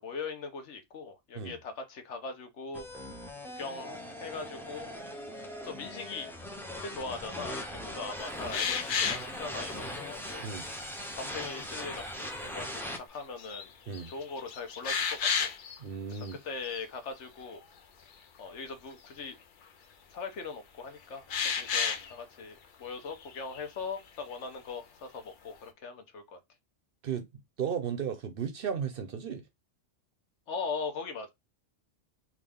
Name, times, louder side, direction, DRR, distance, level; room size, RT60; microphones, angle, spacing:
voice 1, 0.0-2.8 3.5-4.9 5.6-6.3 6.8-10.5 11.1-13.7 14.1-15.5 16.2-17.6 18.4-19.4 20.1-26.4 30.5-31.3, left 4 dB, 75° left, 1.1 m, -40 dB
sound 1, 2.7-13.0, equal, 5° left, 0.3 m, -40 dB
sound 2, 8.5-9.3 10.0-10.1 10.6-11.1 11.6-12.1 12.7-12.8 13.2-13.7 13.9-15.8 16.1-16.3 16.7-16.8 21.3-22.1 23.1-23.7, left 6 dB, 50° left, 0.7 m, -32 dB
voice 2, 15.8-16.4 27.0-27.3 27.6-29.4, right 7 dB, 60° right, 0.7 m, -34 dB
3.7 x 2.3 x 3.4 m
omnidirectional pair, 1.2 m